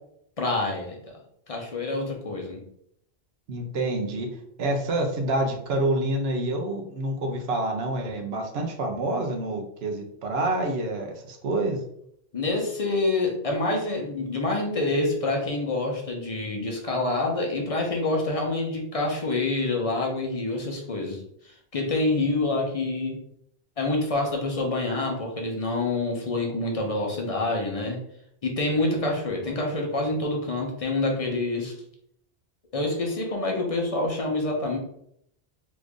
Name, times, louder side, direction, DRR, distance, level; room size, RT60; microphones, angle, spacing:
voice 1, 0.4-1.0 1.5-2.6 12.3-23.2 23.8-28.0 28.4-31.7 32.7-34.8, left 2 dB, 40° left, 0 dB, 0.6 m, -27 dB
voice 2, 3.5-4.3 4.6-11.8, right 2 dB, 75° right, 2 dB, 0.9 m, -27 dB
3.0 x 2.5 x 3.5 m, 0.71 s
omnidirectional pair, 1.1 m